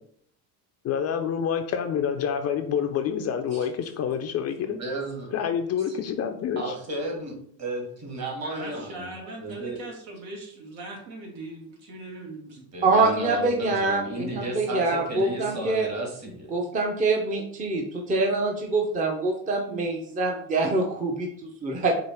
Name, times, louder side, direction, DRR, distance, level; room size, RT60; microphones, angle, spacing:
voice 1, 0.8-4.8 5.3-6.7, left 8 dB, 35° left, 6 dB, 0.4 m, -27 dB
voice 2, 4.6-5.3 5.9-6.0 6.6-7.3 7.6-9.1 9.4-9.8 12.7-16.5, right 1 dB, 35° right, 0 dB, 1.8 m, -33 dB
voice 3, 8.4-12.7, right 2 dB, 75° right, -1 dB, 1.9 m, -40 dB
voice 4, 12.8-15.9 16.5-22.0, right 3 dB, 20° right, 1 dB, 0.6 m, -25 dB
4.9 x 2.5 x 4.4 m, 0.65 s
supercardioid pair, 110°, 44 cm